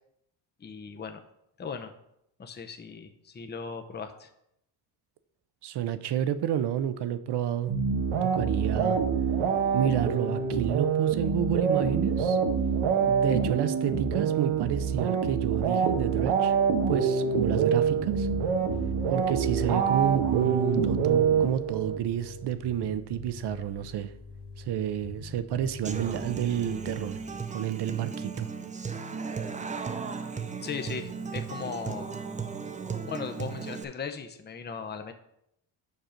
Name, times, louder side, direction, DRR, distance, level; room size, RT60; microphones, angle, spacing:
voice 1, 0.6-1.2 1.6-1.9 2.4-4.3 30.6-32.2 33.1-35.1, left 6 dB, 20° left, 6 dB, 0.7 m, -38 dB
voice 2, 5.6-7.8 8.2-9.0 9.7-12.4 13.1-16.5 16.9-18.3 19.1-24.1 24.6-27.2 27.5-28.5, right 10 dB, 55° right, 13 dB, 0.7 m, -30 dB
sound 1, 7.7-22.0, right 6 dB, 90° right, 1.1 m, -26 dB
Bass guitar, 17.8-27.4, left 4 dB, 90° left, 1.5 m, -44 dB
Human voice / Acoustic guitar, 25.8-33.8, right 5 dB, 15° right, 0.4 m, -36 dB
5.9 x 5.5 x 5.0 m, 0.77 s
cardioid pair, 110°, 48 cm